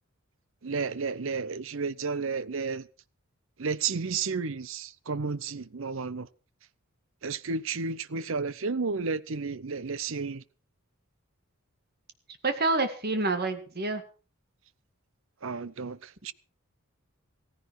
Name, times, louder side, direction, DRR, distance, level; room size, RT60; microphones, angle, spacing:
voice 1, 0.6-2.9 3.6-6.3 7.2-10.4 15.4-16.3, right 4 dB, 65° right, 0.7 m, -32 dB
voice 2, 12.4-14.0, right 3 dB, 45° right, 2.0 m, -27 dB
16.5 x 15.0 x 4.7 m
head